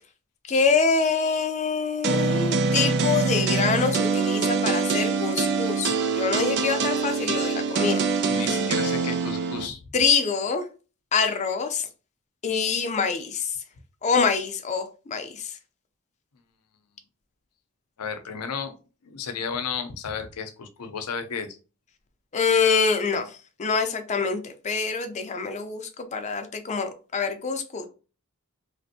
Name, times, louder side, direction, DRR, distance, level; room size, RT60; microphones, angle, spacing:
voice 1, 0.5-8.0 9.9-10.7 11.1-11.9 12.4-13.6 14.0-15.6 22.3-27.9, left 5 dB, 30° left, 0.4 m, -25 dB
sound 1, 2.0-9.7, right 4 dB, 50° right, 0.4 m, -24 dB
voice 2, 8.2-9.8 18.0-18.7 19.0-21.6, left 6 dB, 90° left, 0.6 m, -33 dB
3.2 x 2.5 x 2.6 m
head